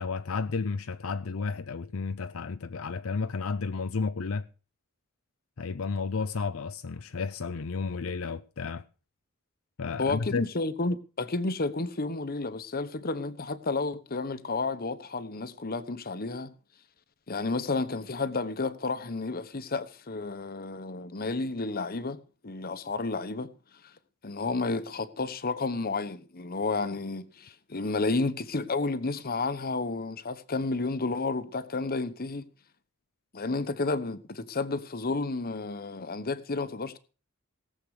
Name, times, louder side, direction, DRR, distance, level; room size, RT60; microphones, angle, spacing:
voice 1, 0.0-4.5 5.6-8.8 9.8-10.4, left 4 dB, 70° left, 0.6 m, -32 dB
voice 2, 10.0-16.5 17.3-23.5 24.2-32.5 33.3-37.0, left 3 dB, 45° left, 1.1 m, -31 dB
18.0 x 7.6 x 6.6 m
head